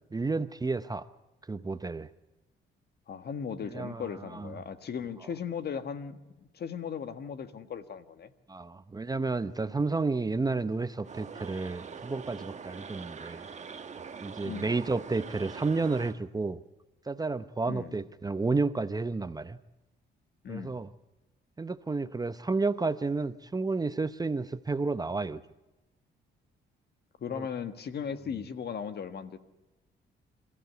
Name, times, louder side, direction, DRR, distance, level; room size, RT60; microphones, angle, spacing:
voice 1, 0.1-1.1 1.5-2.1 3.7-4.1 4.3-4.5 8.5-13.5 14.2-16.6 17.1-19.6 20.5-20.9 21.6-25.4 27.3-27.5, right 3 dB, 20° right, 12 dB, 0.7 m, -31 dB
voice 2, 3.1-8.3 14.4-14.8 17.7-17.9 20.4-20.8 27.2-29.4, left 7 dB, 55° left, 10 dB, 1.6 m, -37 dB
sound 1, 11.0-16.2, right 6 dB, 35° right, 1.3 m, -43 dB
27.0 x 15.0 x 8.2 m, 1.1 s
cardioid pair, 90°, 20 cm